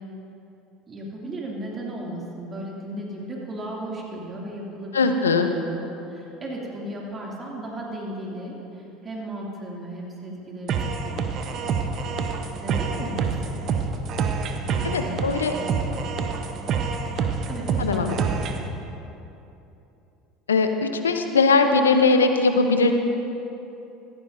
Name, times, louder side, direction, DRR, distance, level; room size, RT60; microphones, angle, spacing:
voice 1, 0.9-12.3 12.6-13.6 14.7-15.1 15.5-15.9 17.5-18.5, right 1 dB, 30° right, -3 dB, 2.5 m, -36 dB
voice 2, 4.9-5.5 14.9-15.5 17.8-18.1 20.5-22.9, left 4 dB, 90° left, 7 dB, 0.7 m, -20 dB
sound 1, 10.7-18.7, right 5 dB, 50° right, 0.9 m, -27 dB
15.0 x 14.5 x 2.7 m, 2.9 s
hypercardioid pair, 75°, 0 cm